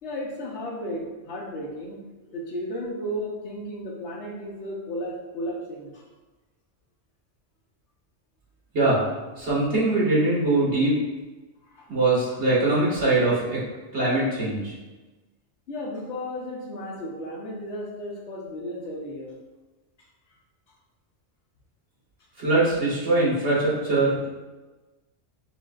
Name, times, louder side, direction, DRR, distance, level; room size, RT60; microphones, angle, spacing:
voice 1, 0.0-6.0 11.7-11.9 12.3-12.4 15.7-19.3, equal, 70° left, -2 dB, 1.1 m, -34 dB
voice 2, 9.4-11.0 11.9-13.6 13.9-14.7 22.4-24.3, right 2 dB, 70° right, -7 dB, 1.7 m, -22 dB
7.1 x 2.5 x 2.4 m, 1.2 s
omnidirectional pair, 1.2 m